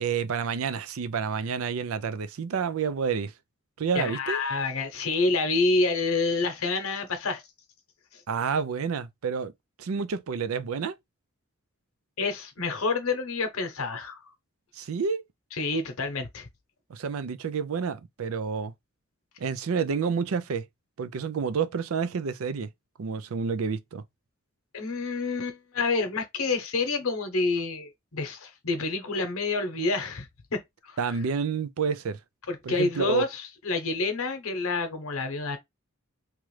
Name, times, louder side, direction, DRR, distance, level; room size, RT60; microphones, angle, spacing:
voice 1, 0.0-3.3 3.8-4.4 8.3-9.5 9.8-11.0 14.7-15.2 16.9-18.7 19.4-20.6 21.0-22.7 23.0-24.0 31.0-32.2 32.6-33.2, right 6 dB, 80° right, 0.4 m, -29 dB
voice 2, 3.9-7.4 8.1-8.2 12.2-14.2 15.6-16.5 24.7-31.0 32.5-35.6, left 3 dB, 85° left, 0.9 m, -28 dB
3.0 x 2.4 x 3.1 m
head